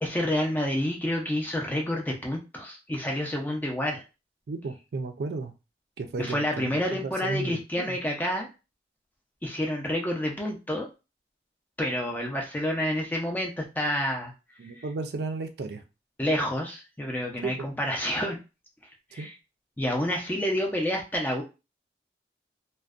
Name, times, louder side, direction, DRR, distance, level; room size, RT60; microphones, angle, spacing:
voice 1, 0.0-4.0 6.2-8.5 9.4-10.9 11.8-14.3 14.8-14.9 16.2-18.4 19.1-19.3 19.8-21.4, left 1 dB, 10° left, 0 dB, 0.4 m, -29 dB
voice 2, 4.5-5.5 6.0-8.0 14.6-15.8 17.4-17.7 19.2-19.3, right 3 dB, 70° right, 7 dB, 0.4 m, -34 dB
2.5 x 2.1 x 2.3 m, 0.29 s
head